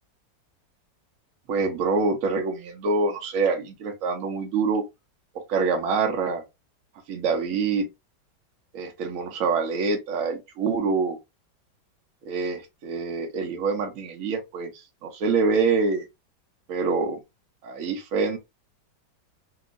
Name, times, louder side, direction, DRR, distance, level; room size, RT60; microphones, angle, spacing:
voice 1, 1.5-4.8 5.5-6.4 7.1-7.9 8.7-11.2 12.2-14.7 15.0-16.1 16.7-17.2 17.6-18.4, right 4 dB, 60° right, 0.9 m, -25 dB
2.9 x 2.7 x 2.5 m
omnidirectional pair, 2.1 m